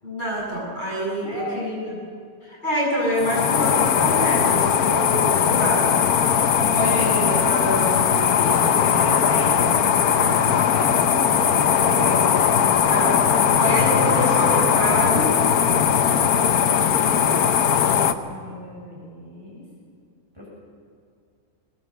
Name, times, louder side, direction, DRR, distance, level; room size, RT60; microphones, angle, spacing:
voice 1, 0.0-1.9 2.4-5.9 6.7-8.3 12.8-13.3 13.6-15.3, equal, 30° left, -5 dB, 8.1 m, -26 dB
voice 2, 1.1-1.8 8.1-12.3 14.1-14.3 15.7-19.6 20.3-20.5, left 1 dB, 15° right, -5 dB, 7.7 m, -36 dB
sound 1, 3.2-18.1, left 8 dB, 85° left, 1.4 m, -19 dB
22.0 x 19.5 x 7.9 m, 2.3 s
omnidirectional pair, 1.6 m